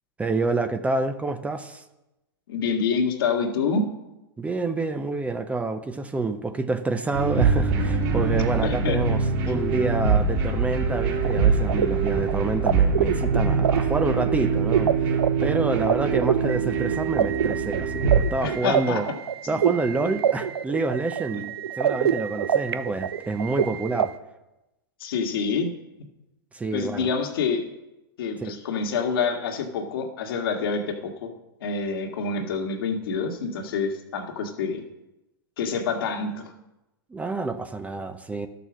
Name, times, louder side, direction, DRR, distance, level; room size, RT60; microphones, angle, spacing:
voice 1, 0.2-1.8 4.4-15.1 15.4-19.1 19.5-24.1 26.5-27.1 28.4-28.6 37.1-38.5, right 3 dB, 10° right, 9 dB, 0.7 m, -28 dB
voice 2, 2.5-3.9 8.6-9.0 18.4-19.0 25.0-25.7 26.7-27.6 28.2-31.3 31.6-34.8 35.6-36.5, left 5 dB, 70° left, 3 dB, 1.8 m, -27 dB
sound 1, 7.1-18.2, right 5 dB, 50° right, 3.6 m, -23 dB
sound 2, 11.2-24.1, right 9 dB, 85° right, 0.6 m, -26 dB
12.5 x 6.8 x 6.1 m, 0.96 s
hypercardioid pair, 120°, 13 cm